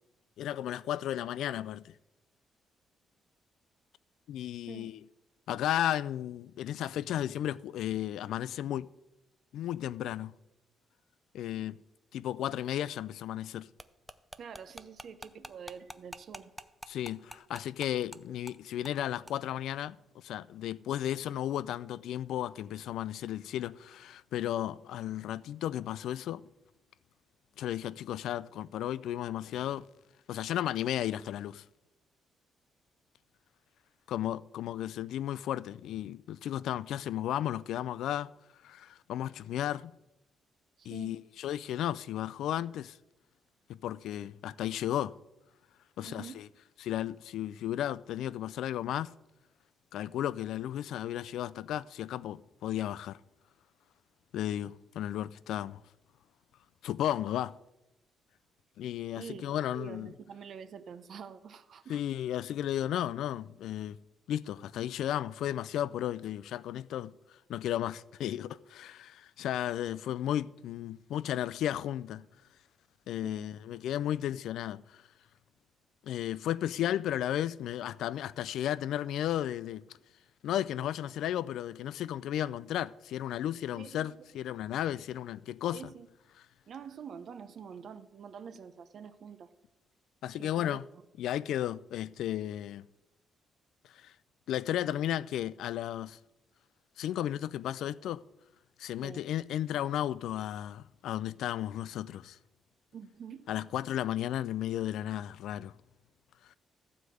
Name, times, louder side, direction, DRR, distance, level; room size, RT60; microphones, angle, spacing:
voice 1, 0.4-1.9 4.3-5.0 5.5-8.9 9.5-10.3 11.3-11.8 12.1-13.7 16.9-26.5 27.6-29.9 30.3-31.6 34.1-38.3 38.6-39.9 40.9-43.0 43.7-45.1 46.0-46.5 46.8-49.1 49.9-53.2 54.3-55.8 56.8-57.6 58.8-60.1 61.9-64.0 64.3-67.1 67.5-72.3 73.1-74.8 76.0-79.8 80.4-85.8 90.2-90.8 91.2-92.9 94.0-94.1 94.5-96.2 97.0-98.2 98.8-102.4 103.5-105.7, left 11 dB, 80° left, 0.3 m, -34 dB
sound 1, 13.8-18.2 18.5-18.6 18.8-19.0 19.3-19.4, equal, ahead, 0.5 m, -46 dB
voice 2, 14.4-16.6 40.8-41.2 46.0-46.4 59.2-59.4 59.7-62.0 73.2-73.5 83.8-84.1 85.7-86.1 86.7-89.5 90.3-90.8 99.0-99.3 102.9-103.5, right 7 dB, 55° right, 0.8 m, -46 dB
14.5 x 4.9 x 7.9 m
cardioid pair, 120°, 0 cm